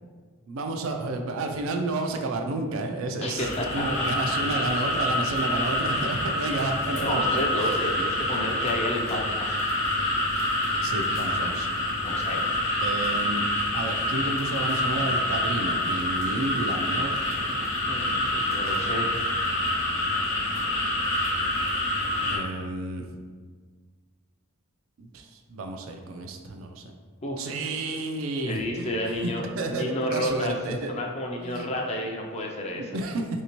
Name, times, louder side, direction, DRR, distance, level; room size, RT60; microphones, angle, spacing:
voice 1, 0.5-7.4 10.8-11.7 12.8-13.5 13.7-17.7 22.3-23.1 25.0-26.8 27.4-29.3 29.6-30.9 31.4-31.7 32.7-33.3, right 2 dB, 70° right, 4 dB, 0.4 m, -31 dB
voice 2, 3.2-3.6 4.2-4.3 6.9-9.6 12.0-12.5 17.9-19.2 27.2-27.5 28.5-30.5 30.9-32.9, left 1 dB, 30° left, 0 dB, 0.4 m, -31 dB
sound 1, 3.4-22.4, left 1 dB, 70° left, 0.7 m, -27 dB
3.3 x 2.7 x 2.9 m, 1.5 s
head